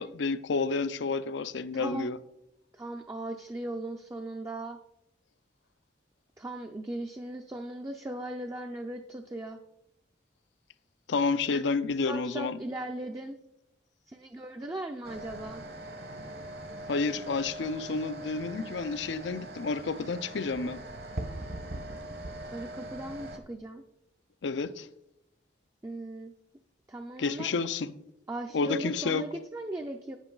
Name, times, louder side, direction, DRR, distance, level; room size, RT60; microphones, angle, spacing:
voice 1, 0.0-2.2 11.1-12.6 16.9-20.8 24.4-24.9 27.2-27.9 28.5-29.2, left 4 dB, 75° left, 0.5 m, -30 dB
voice 2, 1.7-2.1 2.7-4.8 6.4-9.6 11.5-11.7 12.1-13.4 14.1-15.6 22.5-23.8 25.8-26.3 26.9-27.5 28.3-30.2, right 1 dB, 15° right, 0.4 m, -38 dB
sound 1, 15.0-23.4, right 1 dB, 55° right, 1.1 m, -41 dB
9.8 x 8.1 x 3.9 m
head